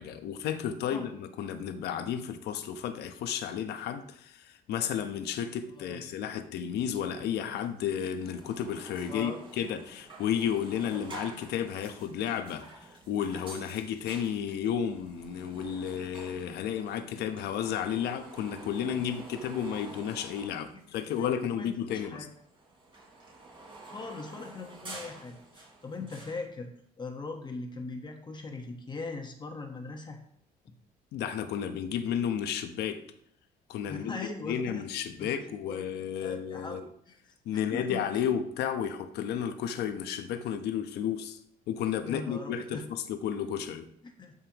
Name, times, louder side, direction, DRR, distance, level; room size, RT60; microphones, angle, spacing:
voice 1, 0.0-9.3 9.6-22.3 31.1-33.0 33.7-34.2 34.5-36.9 37.4-41.4 41.7-43.9, left 8 dB, 75° left, 8 dB, 1.0 m, -32 dB
voice 2, 5.7-6.0 9.1-9.4 20.7-20.8 21.2-22.3 23.9-26.7 27.0-30.2 33.9-34.8 35.2-37.2 37.5-38.0 42.0-42.8 44.0-44.3, left 3 dB, 25° left, 3 dB, 1.3 m, -40 dB
sound 1, 7.6-7.7 7.9-21.4 21.7-26.4, right 2 dB, 30° right, 3.6 m, -49 dB
13.0 x 5.5 x 3.0 m, 0.69 s
cardioid pair, 110°, 17 cm